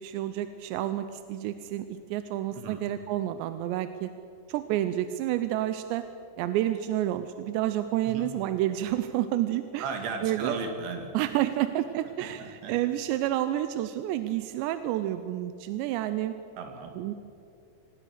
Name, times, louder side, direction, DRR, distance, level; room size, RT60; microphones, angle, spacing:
voice 1, 0.0-4.1 4.5-6.0 6.4-9.8 10.2-10.6 11.1-16.3 17.0-17.1, right 13 dB, 90° right, 10 dB, 3.0 m, -29 dB
voice 2, 9.8-11.2 12.2-12.7 16.6-17.0, right 5 dB, 75° right, 4 dB, 4.5 m, -35 dB
26.0 x 20.0 x 6.7 m, 2.6 s
omnidirectional pair, 5.0 m